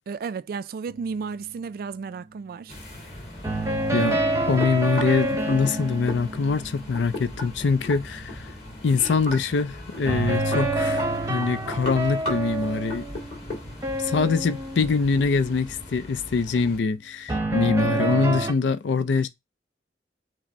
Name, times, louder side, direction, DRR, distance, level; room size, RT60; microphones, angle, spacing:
voice 1, 0.1-2.8, right 5 dB, 55° right, 0.3 m, -33 dB
sound 1, 0.9-1.3 3.4-7.6 10.1-15.6 17.3-18.5, right 2 dB, 15° right, 0.7 m, -28 dB
sound 2, 2.7-16.8, left 1 dB, 35° left, 2.2 m, -38 dB
voice 2, 4.5-8.5 8.8-13.1 14.0-19.3, left 4 dB, 90° left, 0.4 m, -24 dB
6.0 x 2.1 x 4.2 m
head